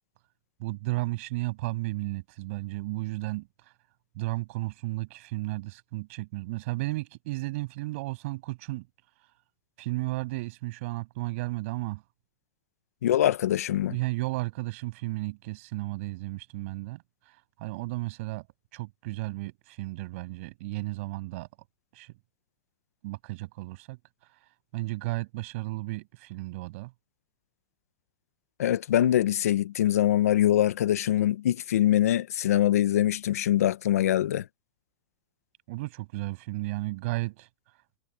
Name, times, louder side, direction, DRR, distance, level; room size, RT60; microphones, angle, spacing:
voice 1, 0.6-3.5 4.1-8.9 9.8-12.0 13.9-17.0 17.6-18.5 18.7-21.5 21.9-22.1 23.0-24.0 24.7-26.9 35.7-37.5, right 21 dB, 60° right, 7.6 m, -33 dB
voice 2, 13.0-14.0 28.6-34.5, left 12 dB, 80° left, 1.1 m, -23 dB
hypercardioid pair, 120°, 8 cm